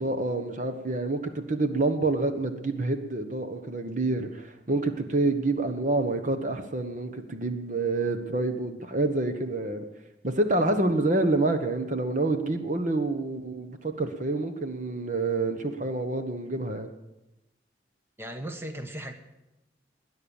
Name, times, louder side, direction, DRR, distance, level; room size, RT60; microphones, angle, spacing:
voice 1, 0.0-9.9 10.2-16.9, right 2 dB, 40° right, 8 dB, 1.1 m, -27 dB
voice 2, 18.2-19.1, right 1 dB, 15° right, 6 dB, 1.2 m, -36 dB
20.0 x 10.0 x 7.1 m, 0.97 s
head